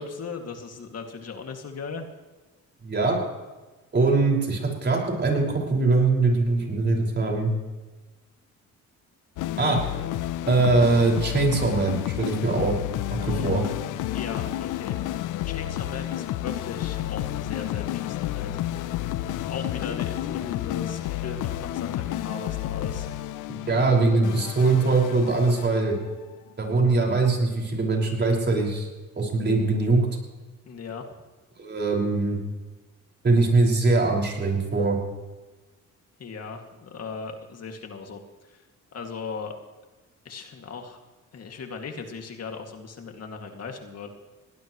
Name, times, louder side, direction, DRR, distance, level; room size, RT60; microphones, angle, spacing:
voice 1, 0.0-2.1 13.2-13.7 14.1-15.0 15.4-18.8 19.5-23.1 24.3-24.5 30.6-31.0 36.2-38.6 38.9-39.5 40.2-41.0 41.3-44.1, left 5 dB, 55° left, 4 dB, 2.4 m, -37 dB
voice 2, 2.8-3.2 3.9-7.5 9.6-9.8 10.5-12.7 13.2-13.6 23.7-25.9 26.6-28.9 29.2-30.1 31.6-32.4 33.2-35.0, right 3 dB, 35° right, 0 dB, 5.6 m, -22 dB
sound 1, 9.4-26.1, left 13 dB, 90° left, 0.7 m, -31 dB
21.0 x 18.5 x 3.2 m, 1.3 s
cardioid pair, 90°, 30 cm